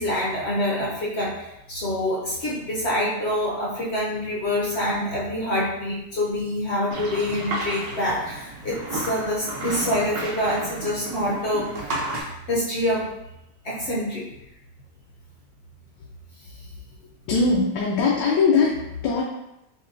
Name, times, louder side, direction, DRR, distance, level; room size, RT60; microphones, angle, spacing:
voice 1, 0.0-11.7 12.1-13.1 13.6-14.3, left 1 dB, 55° left, -5 dB, 0.8 m, -26 dB
sound 1, 6.9-12.2, right 2 dB, 65° right, 1.2 m, -32 dB
voice 2, 17.3-19.2, left 4 dB, 80° left, -3 dB, 1.3 m, -21 dB
6.5 x 2.2 x 2.6 m, 0.89 s
omnidirectional pair, 1.9 m